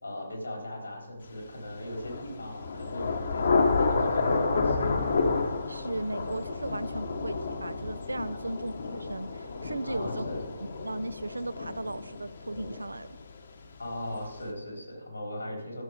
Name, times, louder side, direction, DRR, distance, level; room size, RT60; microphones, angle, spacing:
voice 1, 0.0-5.0 9.8-10.4 13.8-15.8, left 1 dB, 85° left, 0 dB, 3.6 m, -39 dB
Thunder / Rain, 1.8-13.4, left 4 dB, 60° left, 1.2 m, -30 dB
voice 2, 5.7-10.3 10.8-13.1, right 2 dB, 85° right, 17 dB, 0.4 m, -36 dB
12.5 x 6.7 x 5.0 m, 1.1 s
figure-of-eight pair, 140°, 0 cm